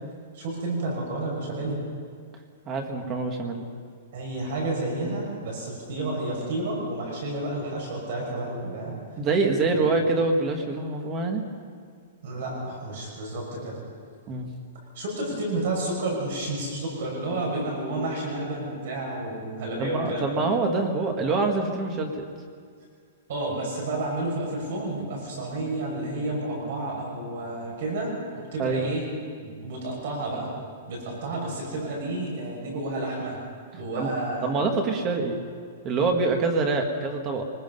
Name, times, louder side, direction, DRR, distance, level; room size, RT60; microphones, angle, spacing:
voice 1, 0.3-1.8 4.1-9.0 9.7-9.8 12.2-13.8 14.9-20.5 23.3-29.1 29.4-30.5 30.9-33.4 33.7-34.5, right 2 dB, 50° right, -2 dB, 5.8 m, -31 dB
voice 2, 2.7-3.6 9.2-11.4 14.3-14.5 19.8-22.2 28.6-28.9 34.0-34.1 34.4-35.4 35.8-37.4, right 3 dB, 20° right, 4 dB, 1.6 m, -25 dB
24.0 x 20.0 x 5.4 m, 2.1 s
hypercardioid pair, 180°, 0 cm